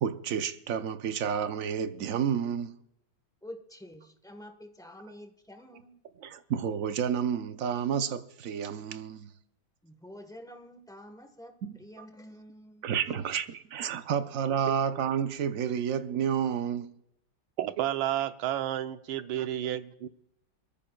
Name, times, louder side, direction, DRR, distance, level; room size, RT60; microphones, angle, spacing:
voice 1, 0.0-2.8 6.2-9.3 11.6-12.1 12.8-16.9 19.4-19.5, right 8 dB, 65° right, 0.8 m, -30 dB
voice 2, 3.4-6.0 9.8-12.9, left 1 dB, 5° left, 0.8 m, -48 dB
voice 3, 17.6-20.1, right 12 dB, 80° right, 1.6 m, -31 dB
23.5 x 14.0 x 2.3 m
omnidirectional pair, 2.2 m